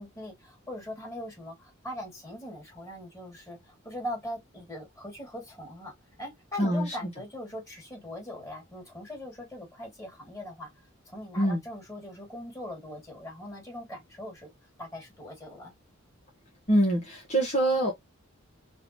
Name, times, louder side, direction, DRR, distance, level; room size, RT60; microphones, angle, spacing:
voice 1, 0.0-3.6 3.8-5.9 6.2-10.7 11.1-14.5 14.8-15.7, left 1 dB, 15° left, 2.5 m, -40 dB
voice 2, 6.6-6.9 11.4-11.6 16.7-17.9, right 1 dB, 35° left, 1.5 m, -24 dB
4.0 x 2.7 x 3.0 m
head